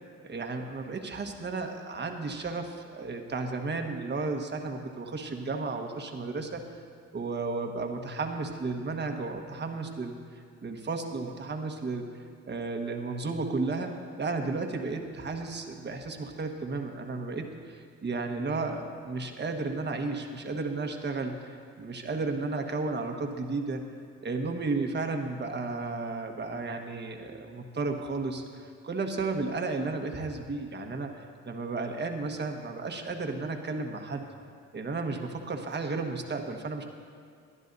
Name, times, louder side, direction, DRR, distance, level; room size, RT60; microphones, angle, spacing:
voice 1, 0.2-6.6 7.1-10.2 10.6-12.0 12.5-13.9 14.2-21.5 21.8-23.9 24.2-28.4 28.8-34.2 34.7-36.8, right 3 dB, 35° right, 4 dB, 1.3 m, -33 dB
22.5 x 11.0 x 2.7 m, 2.3 s
cardioid pair, 90°, 30 cm